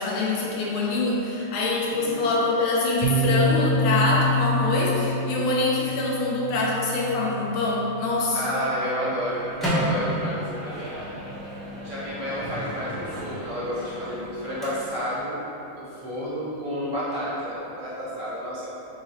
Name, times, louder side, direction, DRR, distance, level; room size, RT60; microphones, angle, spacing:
voice 1, 0.0-8.4, left 2 dB, 75° left, -3 dB, 1.5 m, -24 dB
sound 1, 3.0-10.7, left 1 dB, 85° right, 1.8 m, -28 dB
voice 2, 8.3-10.9 11.8-15.3 15.7-18.7, equal, 55° right, -10 dB, 1.3 m, -30 dB
Microwave oven, 9.2-15.2, equal, ahead, 0.5 m, -32 dB
6.5 x 3.0 x 2.7 m, 3.0 s
omnidirectional pair, 2.4 m